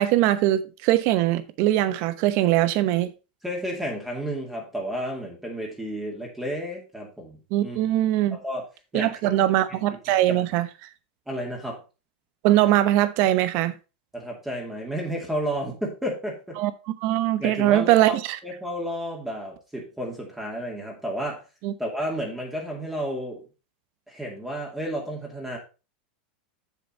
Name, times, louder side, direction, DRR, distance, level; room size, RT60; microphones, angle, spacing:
voice 1, 0.0-3.1 7.5-8.4 8.9-10.7 12.4-13.7 16.6-16.7 17.0-18.4 21.6-21.7, right 14 dB, 50° right, 0.9 m, -21 dB
voice 2, 3.4-7.8 8.3-8.6 8.9-9.5 10.3-10.4 11.3-11.8 14.1-16.6 17.4-18.2 18.4-21.4 21.8-23.4 24.1-25.6, equal, 5° right, 2.3 m, -32 dB
7.2 x 6.9 x 4.3 m
supercardioid pair, 140°, 5 cm